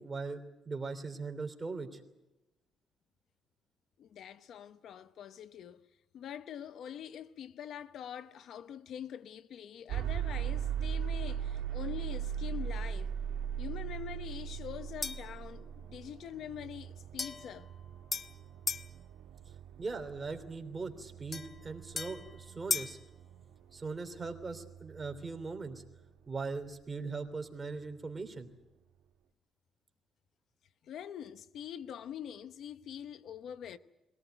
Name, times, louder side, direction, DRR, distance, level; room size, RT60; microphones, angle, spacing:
voice 1, 0.0-2.0 19.5-23.0 23.7-25.8 26.3-28.5, right 4 dB, 25° right, 3.1 m, -40 dB
voice 2, 4.0-5.9 6.1-13.1 13.6-17.7 30.8-33.8, left 9 dB, 70° left, 0.8 m, -44 dB
sound 1, 9.9-25.8, right 9 dB, 85° right, 2.2 m, -39 dB
sound 2, 15.0-15.4 17.2-18.9 21.3-23.0, left 4 dB, 35° left, 1.1 m, -38 dB
22.5 x 18.0 x 9.1 m
cardioid pair, 90°, 0 cm